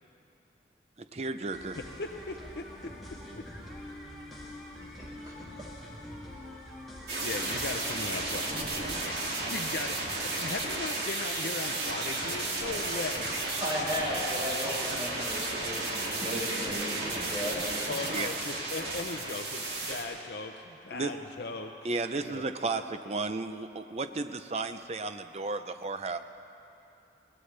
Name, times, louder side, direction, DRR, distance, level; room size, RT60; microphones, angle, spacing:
voice 1, 1.0-1.8 18.1-18.3 20.9-21.1 21.8-26.2, right 3 dB, 35° right, 9 dB, 0.6 m, -33 dB
sound 1, 1.5-9.2, left 1 dB, ahead, 2.4 m, -45 dB
voice 2, 5.0-5.3 13.6-18.1, equal, 20° right, -6 dB, 4.3 m, -35 dB
sound 2, 7.1-20.0, right 2 dB, 65° right, 2.6 m, -33 dB
voice 3, 7.2-9.2 9.5-13.3 17.9-21.7 22.1-22.4, left 3 dB, 65° left, 5 dB, 0.6 m, -38 dB
22.5 x 18.0 x 3.3 m, 2.7 s
head